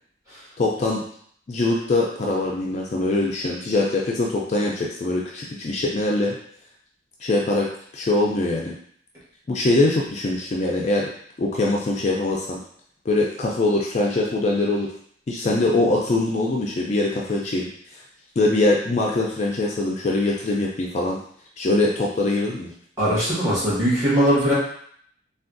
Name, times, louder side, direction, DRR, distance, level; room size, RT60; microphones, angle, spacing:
voice 1, 0.6-1.0 1.5-6.3 7.2-7.7 7.9-8.7 9.5-11.0 11.4-12.6 13.1-14.9 15.3-18.0 18.4-21.2 21.6-22.7, left 2 dB, 40° left, -2 dB, 0.3 m, -22 dB
voice 2, 23.0-24.5, equal, 15° right, -10 dB, 1.3 m, -20 dB
3.4 x 2.3 x 2.5 m, 0.63 s
head